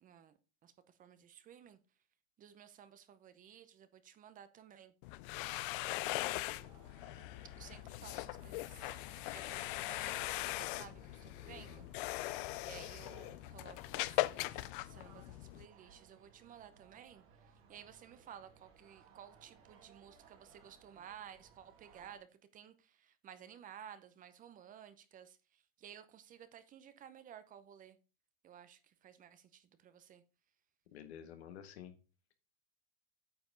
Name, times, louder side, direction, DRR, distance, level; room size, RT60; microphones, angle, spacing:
voice 1, 0.0-1.8 2.4-4.9 6.0-6.7 7.6-9.0 9.3-12.2 12.6-28.0 28.4-30.2, right 9 dB, 25° right, 0.7 m, -56 dB
sound 1, 5.0-15.6, left 19 dB, 55° left, 0.5 m, -40 dB
sound 2, 6.5-22.2, right 6 dB, 45° right, 1.9 m, -63 dB
voice 2, 11.4-11.9 30.9-32.0, left 9 dB, 85° left, 1.6 m, -51 dB
8.7 x 5.2 x 3.8 m
supercardioid pair, 130°, 32 cm